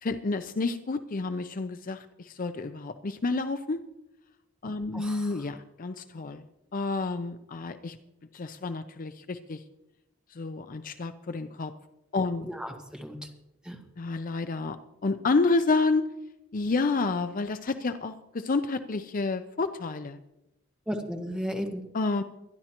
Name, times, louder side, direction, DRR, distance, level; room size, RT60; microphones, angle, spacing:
voice 1, 0.0-3.8 4.6-6.4 6.7-8.0 8.3-9.6 10.4-11.7 12.1-12.5 14.0-14.8 15.0-16.1 16.5-20.2 21.9-22.2, left 3 dB, 45° left, 10 dB, 0.6 m, -29 dB
voice 2, 4.9-5.4 12.5-13.2 13.6-13.8 20.9-21.8, equal, 5° right, 2 dB, 1.7 m, -34 dB
23.5 x 11.0 x 3.0 m, 0.90 s
head